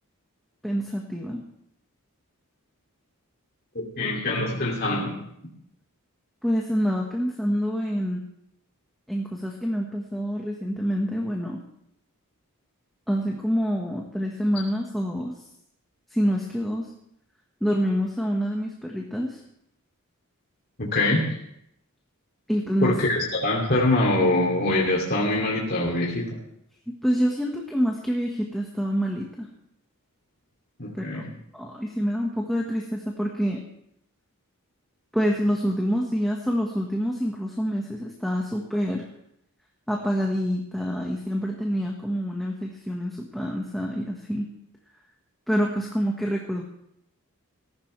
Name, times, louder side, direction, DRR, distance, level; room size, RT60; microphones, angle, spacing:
voice 1, 0.6-1.4 6.4-8.2 9.1-11.6 13.1-15.3 16.1-16.9 17.6-19.4 22.5-23.0 26.9-29.5 30.9-31.2 31.5-33.6 35.1-39.0 39.9-44.5 45.5-46.6, equal, ahead, -1 dB, 1.5 m, -27 dB
voice 2, 3.7-5.2 20.8-21.2 22.8-26.3 30.8-31.3, left 2 dB, 45° left, -4 dB, 2.7 m, -24 dB
19.0 x 15.0 x 3.4 m, 0.74 s
head